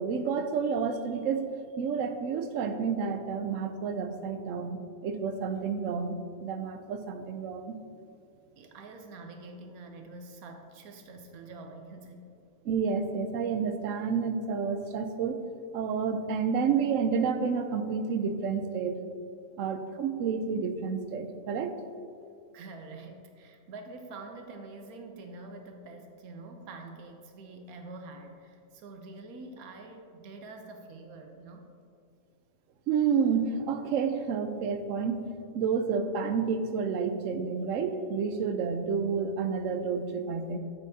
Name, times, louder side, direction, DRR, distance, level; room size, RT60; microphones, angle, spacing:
voice 1, 0.0-1.4 1.8-7.8 12.6-15.4 15.7-19.0 19.6-21.7 32.9-35.2 35.5-40.6, right 6 dB, 70° right, 8 dB, 0.9 m, -30 dB
voice 2, 8.6-12.3 22.5-31.7, right 3 dB, 90° right, 4 dB, 1.2 m, -46 dB
9.1 x 7.2 x 2.7 m, 2.5 s
omnidirectional pair, 1.5 m